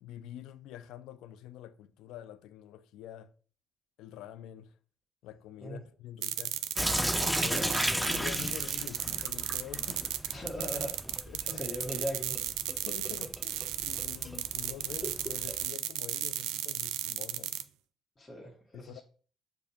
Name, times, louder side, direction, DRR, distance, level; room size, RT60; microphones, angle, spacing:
voice 1, 0.0-3.3 4.0-4.7 5.2-6.6 7.2-10.4 11.3-11.6 12.7-17.6 18.7-19.0, left 11 dB, 75° left, 0.3 m, -46 dB
sound 1, 6.2-17.6, right 13 dB, 80° right, 0.3 m, -34 dB
Sink (filling or washing) / Drip, 6.8-15.7, equal, 5° right, 0.3 m, -35 dB
voice 2, 10.3-10.9 11.4-12.3 18.2-19.0, equal, 25° left, 1.5 m, -38 dB
6.5 x 2.6 x 2.8 m
supercardioid pair, 60°, 0 cm